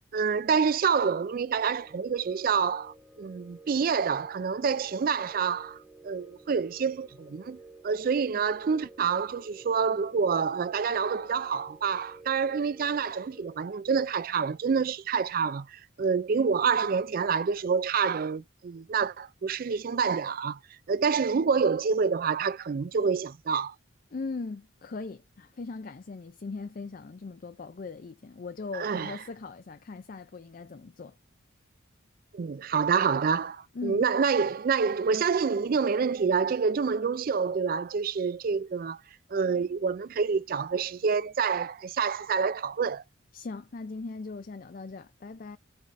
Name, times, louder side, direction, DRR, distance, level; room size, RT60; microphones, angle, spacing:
voice 1, 0.1-5.8 6.0-7.6 7.8-20.6 20.9-23.7 28.7-29.2 32.3-39.0 39.3-43.0, right 5 dB, 45° right, 0.3 m, -27 dB
sound 1, 1.5-13.6, right 2 dB, 5° right, 1.1 m, -52 dB
voice 2, 24.1-31.2 33.7-34.0 43.3-45.6, left 3 dB, 45° left, 0.4 m, -39 dB
4.7 x 4.2 x 2.6 m
head